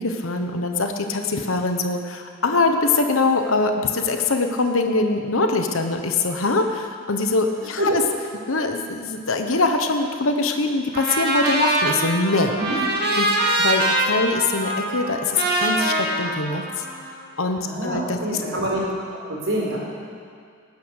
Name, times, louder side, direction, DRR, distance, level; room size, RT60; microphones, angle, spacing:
voice 1, 0.0-8.0 8.5-12.5 13.2-13.3 13.6-16.8 17.4-18.4, left 3 dB, 75° left, 5 dB, 1.1 m, -23 dB
Trumpet, 10.9-17.2, right 2 dB, 50° right, 2.0 m, -23 dB
voice 2, 17.3-18.8 19.3-19.8, right 1 dB, 70° right, -3 dB, 4.2 m, -26 dB
18.5 x 9.8 x 6.5 m, 2.2 s
head